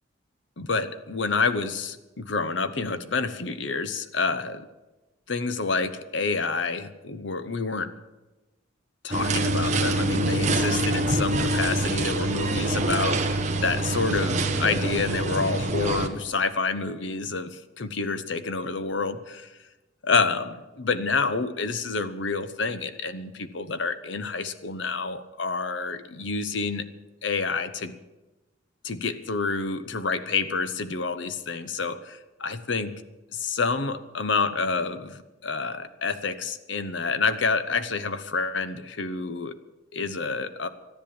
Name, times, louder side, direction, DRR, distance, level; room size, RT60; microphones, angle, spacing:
voice 1, 0.6-4.7 5.3-7.9 9.0-19.5 20.0-26.9 27.2-27.9 28.8-33.0 33.3-39.6 39.9-40.7, left 4 dB, 60° left, 12 dB, 0.9 m, -28 dB
sound 1, 9.1-16.1, right 2 dB, 35° right, 1.2 m, -25 dB
13.0 x 10.5 x 8.7 m, 1.1 s
head